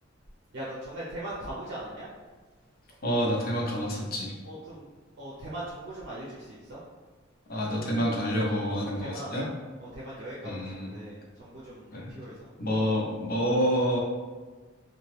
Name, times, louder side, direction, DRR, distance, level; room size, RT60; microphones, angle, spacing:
voice 1, 0.5-2.1 4.4-4.9 5.2-6.8 8.8-9.3 9.8-12.5, right 1 dB, 60° right, -7 dB, 0.6 m, -40 dB
voice 2, 3.0-4.3 7.5-9.4 10.4-10.9 11.9-12.1 12.6-14.0, equal, 50° left, -2 dB, 0.6 m, -28 dB
2.7 x 2.3 x 3.2 m, 1.3 s
head